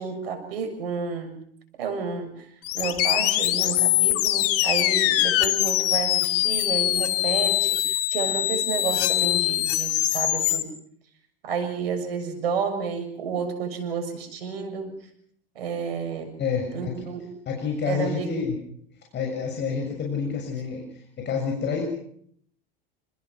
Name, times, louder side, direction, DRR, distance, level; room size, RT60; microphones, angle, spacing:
voice 1, 0.0-1.4 1.8-2.5 2.7-10.7 11.4-15.0 15.6-16.4 16.7-17.3 17.8-18.3, right 5 dB, 85° right, 6 dB, 7.0 m, -31 dB
sound 1, 2.6-10.6, left 15 dB, 55° left, 2.3 m, -23 dB
voice 2, 16.4-17.1 17.4-18.6 19.1-21.8, left 6 dB, 35° left, 1 dB, 6.9 m, -28 dB
28.5 x 20.5 x 6.1 m, 0.66 s
hypercardioid pair, 100°, 29 cm